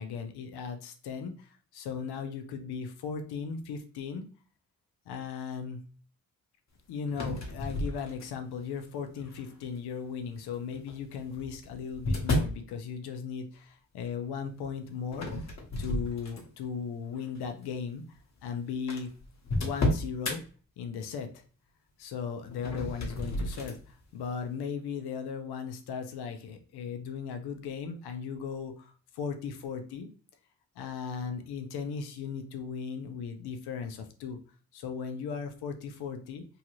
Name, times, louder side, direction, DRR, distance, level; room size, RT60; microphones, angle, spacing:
voice 1, 0.0-4.3 5.1-5.8 6.9-15.5 15.8-19.1 19.6-20.4 20.8-21.4 22.0-30.1 30.8-34.4 34.7-36.4, left 6 dB, 85° left, 6 dB, 0.6 m, -37 dB
sound 1, 7.1-8.5 9.2-9.6 10.7-12.7 15.1-16.7 17.2-17.4 18.2-18.3 18.4-18.5 18.9-20.4 22.5-23.8, left 1 dB, 45° left, 1.0 m, -32 dB
2.9 x 2.4 x 3.0 m, 0.39 s
supercardioid pair, 45°, 38 cm